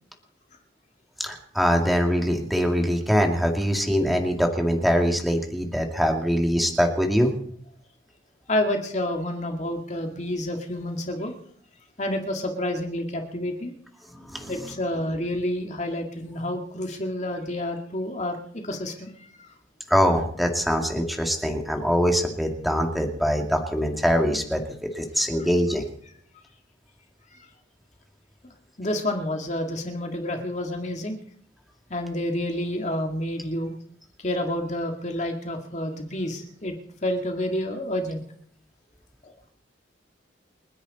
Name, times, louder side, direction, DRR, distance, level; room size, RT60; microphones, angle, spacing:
voice 1, 1.2-7.3 14.3-14.5 19.9-24.6 25.0-25.9, equal, ahead, 2 dB, 2.3 m, -23 dB
voice 2, 8.5-11.3 12.0-13.7 14.5-19.5 25.4-25.5 27.3-27.5 28.4-28.5 28.8-31.2 31.9-33.7 34.2-36.7 37.0-38.2 39.2-39.5, left 1 dB, 40° left, 3 dB, 2.1 m, -29 dB
30.0 x 10.5 x 4.2 m, 0.63 s
head